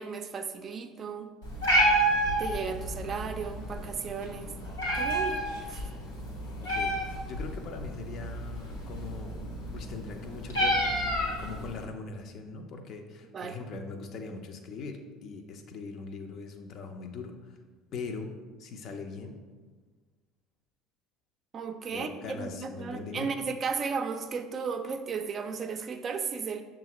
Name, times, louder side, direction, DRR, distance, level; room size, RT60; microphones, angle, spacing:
voice 1, 0.0-1.3 2.4-4.5 5.0-5.8 13.3-13.6 21.5-26.6, right 5 dB, 40° right, 7 dB, 0.4 m, -35 dB
Meow, 1.4-11.8, right 1 dB, 85° left, 1.0 m, -30 dB
voice 2, 6.6-7.0 7.2-9.4 9.7-11.1 11.4-17.3 17.9-18.3 18.6-19.3 21.9-23.3, left 4 dB, 55° left, 5 dB, 0.5 m, -41 dB
6.8 x 2.4 x 2.9 m, 1.4 s
hypercardioid pair, 65°, 0 cm